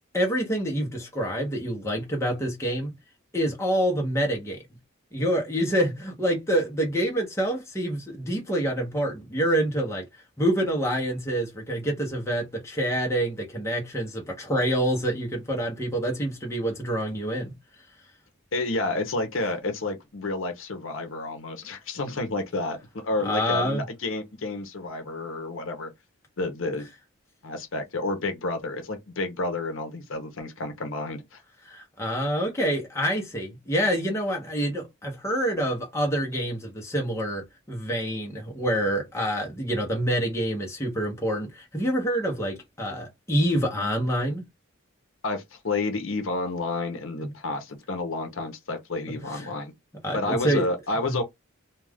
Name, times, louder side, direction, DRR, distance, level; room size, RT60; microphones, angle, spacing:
voice 1, 0.1-2.9 3.3-4.6 5.1-10.0 10.4-17.5 23.2-23.8 31.7-44.4 47.2-47.3 50.0-50.7 51.0-51.2, equal, 15° left, 0.8 m, -27 dB
voice 2, 18.5-25.9 26.4-26.9 27.4-31.4 45.2-49.7 50.1-51.2, left 2 dB, 70° left, 0.8 m, -30 dB
2.4 x 2.3 x 3.4 m
head